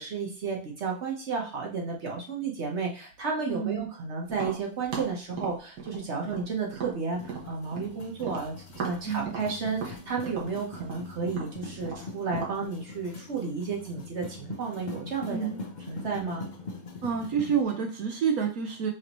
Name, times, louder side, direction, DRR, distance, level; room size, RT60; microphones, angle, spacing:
voice 1, 0.0-15.6 15.9-16.5, right 5 dB, 50° right, 0 dB, 1.2 m, -32 dB
voice 2, 3.5-3.9 9.0-9.3 15.3-15.6 17.0-18.9, right 7 dB, 70° right, 2 dB, 1.1 m, -28 dB
Tap, 4.3-7.9 8.2-12.6, right 5 dB, 90° right, 1.6 m, -38 dB
sound 1, 7.1-17.6, left 3 dB, 60° left, 0.4 m, -42 dB
6.0 x 2.8 x 3.0 m, 0.37 s
omnidirectional pair, 1.7 m